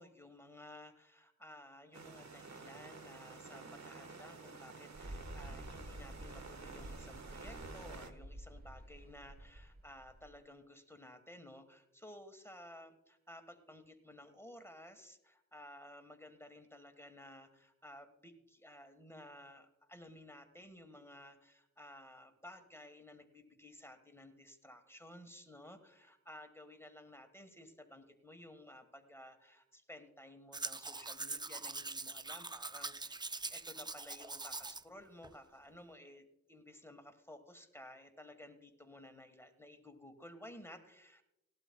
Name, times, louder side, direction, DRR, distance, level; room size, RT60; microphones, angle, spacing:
voice 1, 0.0-33.2 33.5-41.2, left 1 dB, 10° left, 7 dB, 1.4 m, -55 dB
sound 1, 1.9-8.1, right 4 dB, 65° right, 1.3 m, -51 dB
Mechanical fan, 4.9-10.3, right 1 dB, 30° right, 1.1 m, -50 dB
Domestic sounds home sounds, 30.5-34.8 35.2-35.3, right 3 dB, 15° right, 0.4 m, -43 dB
19.0 x 12.0 x 2.2 m, 0.88 s
wide cardioid pair, 70°, 30 cm